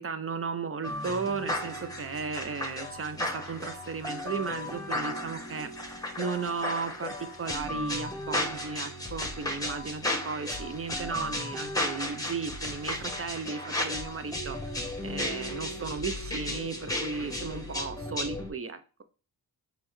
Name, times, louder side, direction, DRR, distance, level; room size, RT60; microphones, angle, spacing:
voice 1, 0.0-5.7 6.2-14.8 15.0-19.0, right 5 dB, 35° right, 10 dB, 0.5 m, -35 dB
sound 1, 0.8-18.5, left 1 dB, 10° left, 1.1 m, -34 dB
4.3 x 3.3 x 3.1 m, 0.35 s
cardioid pair, 70°, 40 cm